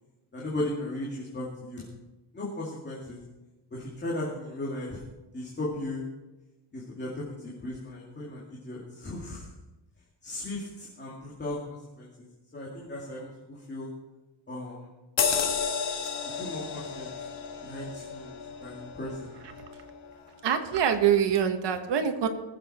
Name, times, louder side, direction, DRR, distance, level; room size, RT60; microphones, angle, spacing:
voice 1, 0.3-1.9 2.3-3.2 3.7-5.0 5.3-6.0 6.7-9.5 10.2-12.1 12.5-13.9 14.5-14.9 16.3-17.1 17.6-19.3, left 1 dB, 20° left, -5 dB, 2.3 m, -36 dB
sound 1, 15.2-20.1 20.6-20.7, left 6 dB, 75° left, 1.9 m, -32 dB
voice 2, 20.4-22.3, right 8 dB, 60° right, 7 dB, 1.4 m, -24 dB
20.5 x 7.9 x 4.3 m, 1.1 s
cardioid pair, 155°, 46 cm